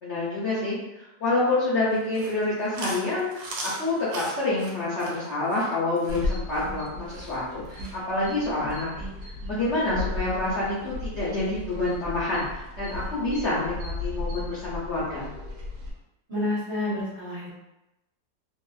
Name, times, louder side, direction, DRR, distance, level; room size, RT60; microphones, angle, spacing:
voice 1, 0.0-15.3, left 2 dB, 65° left, -9 dB, 0.7 m, -28 dB
Chewing mastication, 1.9-8.0, right 2 dB, 90° right, 1.3 m, -39 dB
sound 1, 6.1-15.9, left 2 dB, 70° right, 1.1 m, -35 dB
voice 2, 16.3-17.5, left 1 dB, 30° right, -10 dB, 0.6 m, -29 dB
2.8 x 2.7 x 2.3 m, 0.95 s
omnidirectional pair, 1.9 m